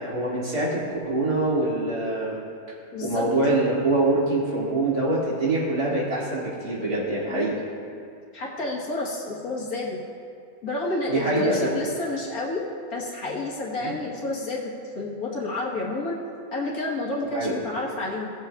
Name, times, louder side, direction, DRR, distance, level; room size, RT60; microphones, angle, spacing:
voice 1, 0.0-2.4 3.0-7.6 11.1-11.7 13.8-13.9 17.3-17.6, right 2 dB, 85° right, -8 dB, 3.1 m, -24 dB
voice 2, 2.9-3.3 7.3-7.5 8.3-10.0 10.6-16.2 16.5-18.3, left 2 dB, 75° left, -4 dB, 1.9 m, -30 dB
16.5 x 7.5 x 2.4 m, 2.4 s
omnidirectional pair, 1.6 m